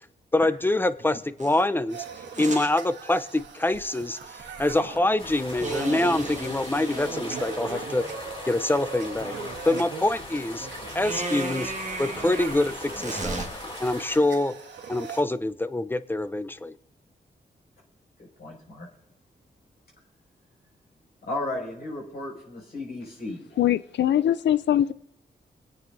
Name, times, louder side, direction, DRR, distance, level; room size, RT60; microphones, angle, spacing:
voice 1, 0.3-2.0 2.4-8.0 8.5-9.4 9.6-10.7 10.9-11.7 12.0-13.4 13.8-14.5 14.9-16.7, left 2 dB, 10° left, 13 dB, 0.6 m, -25 dB
sound 1, 1.4-1.6 2.3-2.7 5.6-8.2 11.0-13.5, right 3 dB, 40° right, 1.7 m, -34 dB
sound 2, 1.9-15.2, right 5 dB, 85° right, 1.4 m, -41 dB
sound 3, 5.2-14.2, left 2 dB, 30° left, 2.7 m, -40 dB
voice 2, 18.4-18.9 21.3-23.6, left 2 dB, 60° left, -4 dB, 6.2 m, -34 dB
voice 3, 23.6-24.9, left 11 dB, 80° left, 16 dB, 0.4 m, -22 dB
26.0 x 8.9 x 2.7 m, 0.79 s
cardioid pair, 65°, 18 cm